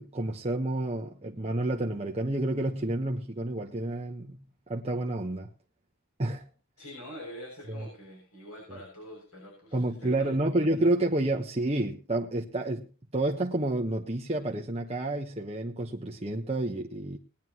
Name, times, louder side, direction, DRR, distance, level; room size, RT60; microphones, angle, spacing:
voice 1, 0.0-5.5 6.2-6.4 7.8-7.9 8.7-8.8 9.7-12.9 13.1-17.2, right 1 dB, 30° right, 1.1 m, -29 dB
voice 2, 6.8-10.4, equal, 90° left, 6.9 m, -45 dB
20.5 x 11.0 x 3.0 m
head